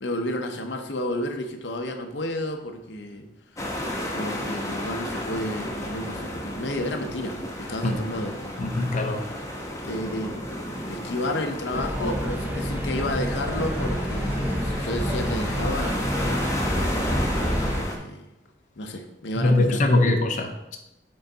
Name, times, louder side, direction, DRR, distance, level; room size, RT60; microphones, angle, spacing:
voice 1, 0.0-3.3 4.1-8.5 9.8-10.4 10.9-15.9 17.6-18.3 18.8-19.8, left 1 dB, 85° left, 5 dB, 0.7 m, -31 dB
sound 1, 3.6-18.0, equal, 20° left, 0.9 m, -33 dB
voice 2, 8.6-9.3 19.4-20.8, left 2 dB, 45° left, 4 dB, 0.6 m, -22 dB
sound 2, 11.7-17.8, equal, 10° right, 0.6 m, -28 dB
6.7 x 3.9 x 3.9 m, 0.92 s
head